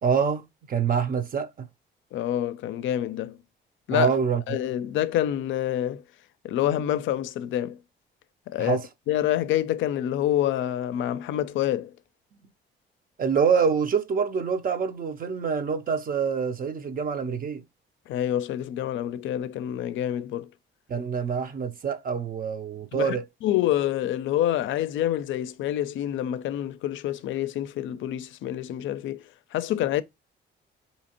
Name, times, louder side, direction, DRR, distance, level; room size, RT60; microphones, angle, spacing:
voice 1, 0.0-1.7 3.9-4.6 8.6-8.8 13.2-17.6 20.9-23.2, right 6 dB, 45° right, 0.6 m, -26 dB
voice 2, 2.1-3.4 3.9-4.1 4.5-6.0 6.4-7.8 8.5-8.8 9.1-11.9 18.1-20.5 22.9-23.2 23.4-29.2 29.5-30.0, left 12 dB, 75° left, 0.4 m, -27 dB
4.2 x 2.8 x 2.8 m
cardioid pair, 90°, 20 cm